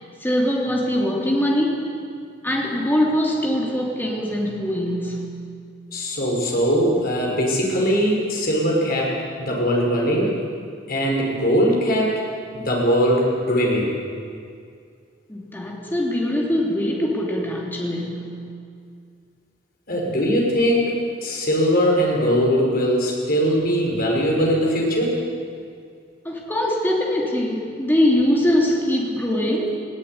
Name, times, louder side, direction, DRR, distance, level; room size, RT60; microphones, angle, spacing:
voice 1, 0.2-1.9 2.4-5.3 15.3-18.3 26.2-29.8, left 1 dB, 10° left, -1 dB, 3.1 m, -22 dB
voice 2, 5.9-10.4 10.9-12.2 12.5-13.9 19.9-25.2, equal, 50° left, -1 dB, 5.6 m, -21 dB
18.5 x 17.0 x 9.7 m, 2.3 s
head